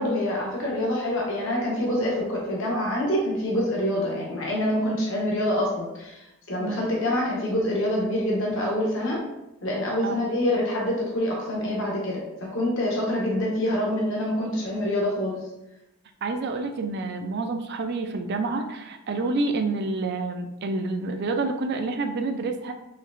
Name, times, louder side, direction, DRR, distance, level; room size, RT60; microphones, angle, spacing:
voice 1, 0.0-9.2 9.6-15.4, left 1 dB, 60° left, -3 dB, 0.9 m, -26 dB
voice 2, 16.2-22.7, right 3 dB, 50° right, 6 dB, 0.4 m, -28 dB
4.4 x 3.1 x 2.4 m, 0.91 s
head